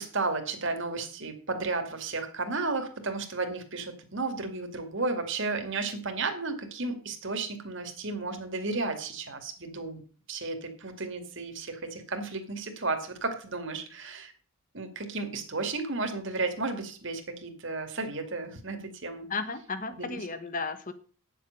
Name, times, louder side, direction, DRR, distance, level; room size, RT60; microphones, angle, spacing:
voice 1, 0.0-10.0 10.3-14.3 14.7-19.3 19.9-20.2, right 3 dB, 55° right, 6 dB, 2.3 m, -33 dB
voice 2, 19.3-20.9, left 4 dB, 35° left, 11 dB, 1.3 m, -34 dB
9.9 x 7.5 x 6.6 m, 0.41 s
head